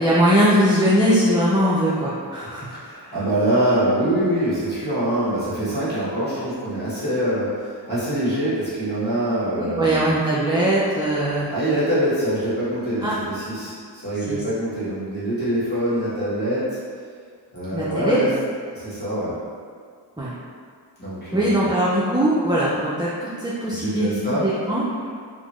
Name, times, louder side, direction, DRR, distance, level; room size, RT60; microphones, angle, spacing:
voice 1, 0.0-3.1 9.5-11.5 13.0-13.1 14.3-14.4 17.7-18.2 20.2-20.3 21.3-24.8, equal, 10° right, -8 dB, 0.3 m, -21 dB
voice 2, 2.8-10.1 11.5-16.7 17.5-18.3 18.7-19.4 21.0-21.7 23.6-24.5, right 1 dB, 20° left, -11 dB, 1.5 m, -24 dB
3.9 x 2.1 x 3.0 m, 2.1 s
wide cardioid pair, 105°, 43 cm